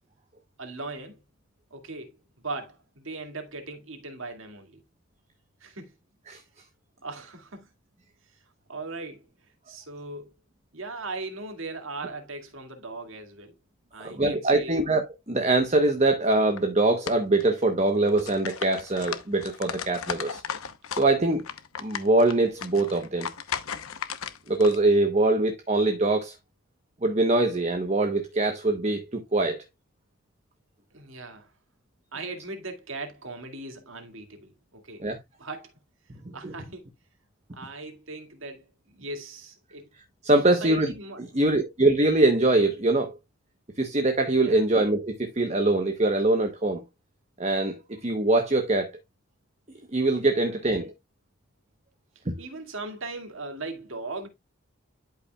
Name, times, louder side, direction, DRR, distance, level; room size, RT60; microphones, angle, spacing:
voice 1, 0.6-1.2 1.7-2.2 2.4-4.8 5.6-5.9 7.0-7.7 8.7-9.2 9.7-10.3 10.7-13.5 13.9-14.8 30.9-31.5 32.1-35.0 35.4-35.7 36.3-36.9 37.5-38.7 38.9-39.9 40.5-41.2 44.3-44.6 52.4-54.3, right 2 dB, 70° right, 2.1 m, -38 dB
voice 2, 14.0-20.4 20.9-21.4 21.8-23.3 24.5-26.4 27.0-29.6 35.0-35.2 36.4-36.5 40.2-40.9 41.3-43.2 43.8-46.8 47.4-48.9 49.9-50.9 52.3-52.4, right 2 dB, 30° right, 1.0 m, -23 dB
sound 1, 16.3-16.6 17.1-17.8 18.1-21.1 21.4-24.8, left 7 dB, 80° left, 0.9 m, -35 dB
11.5 x 5.4 x 2.3 m
head